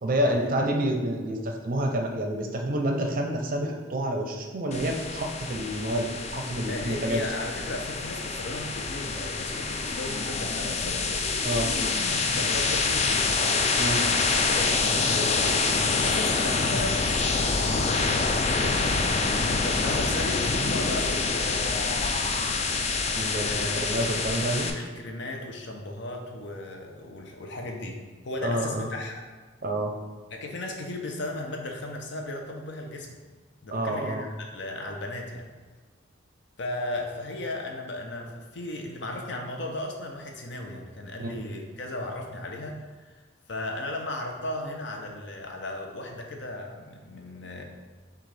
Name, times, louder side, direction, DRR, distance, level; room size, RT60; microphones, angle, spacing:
voice 1, 0.0-7.2 11.4-11.7 13.8-14.0 23.1-24.7 28.4-28.9 29.6-29.9 33.7-34.2 41.2-41.3, right 1 dB, 45° right, 3 dB, 0.5 m, -28 dB
sound 1, 4.7-24.7, left 4 dB, 35° left, 0.3 m, -26 dB
voice 2, 6.7-11.1 11.7-13.4 14.1-22.6 23.2-24.0 24.7-29.2 30.3-33.2 33.6-35.5 36.6-43.1 43.5-47.6, left 1 dB, 65° left, 1 dB, 0.6 m, -36 dB
6.1 x 2.4 x 3.3 m, 1.4 s
head